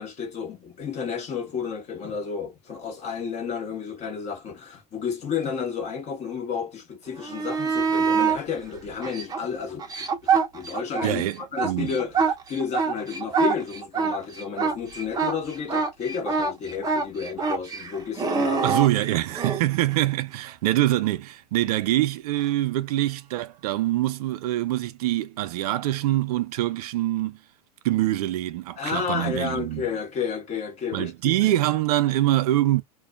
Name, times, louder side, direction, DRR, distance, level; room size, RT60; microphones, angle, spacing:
voice 1, 0.0-10.1 10.5-18.8 28.8-31.3, left 6 dB, 35° left, 1.2 m, -31 dB
sound 1, 7.2-8.4 9.0-11.1 11.4-19.6 22.4-22.5, right 5 dB, 20° right, 0.7 m, -25 dB
voice 2, 11.0-11.9 18.6-27.4 27.8-29.8 30.9-32.8, right 15 dB, 70° right, 0.5 m, -24 dB
2.5 x 2.3 x 2.3 m
hypercardioid pair, 110°, 20 cm